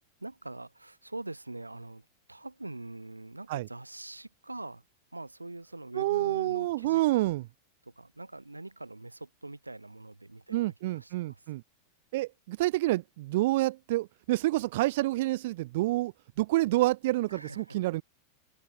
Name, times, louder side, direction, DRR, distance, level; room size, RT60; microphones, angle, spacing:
voice 1, 0.2-4.8 5.1-7.2 7.8-11.5 17.3-17.8, right 2 dB, 85° right, 2.0 m, -43 dB
voice 2, 6.0-7.4 10.5-11.6 12.1-16.1 16.4-18.0, right 18 dB, 50° right, 0.5 m, -28 dB
figure-of-eight pair, 90°, 0 cm